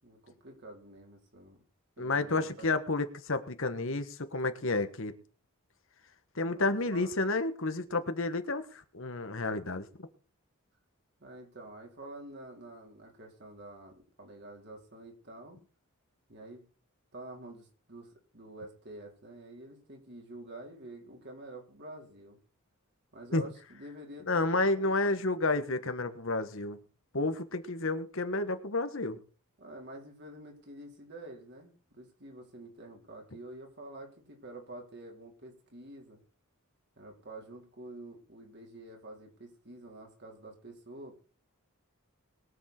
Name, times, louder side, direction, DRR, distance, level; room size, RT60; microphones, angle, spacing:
voice 1, 0.0-1.6 2.0-2.8 6.4-7.1 11.2-15.6 16.3-16.6 17.1-22.4 23.1-24.5 24.7-24.9 25.2-25.3 29.6-36.2 37.0-41.2, right 1 dB, 50° right, 1 dB, 4.2 m, -48 dB
voice 2, 2.0-5.1 6.3-10.1 23.3-23.5 24.3-26.8 27.1-29.2, left 2 dB, 60° left, 9 dB, 1.4 m, -31 dB
22.0 x 7.4 x 4.4 m, 0.38 s
head